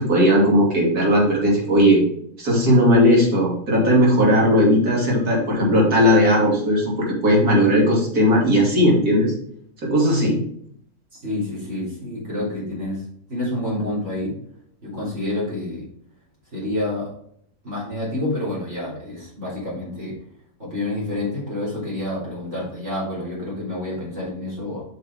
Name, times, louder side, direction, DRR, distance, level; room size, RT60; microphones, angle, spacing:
voice 1, 0.0-2.0 2.4-9.3 9.8-10.4, equal, 80° right, -3 dB, 3.1 m, -17 dB
voice 2, 11.1-14.4 14.8-15.9 16.5-17.1 17.6-20.2 20.6-24.8, left 1 dB, 50° right, -6 dB, 3.9 m, -28 dB
7.9 x 5.6 x 3.5 m, 0.67 s
omnidirectional pair, 1.6 m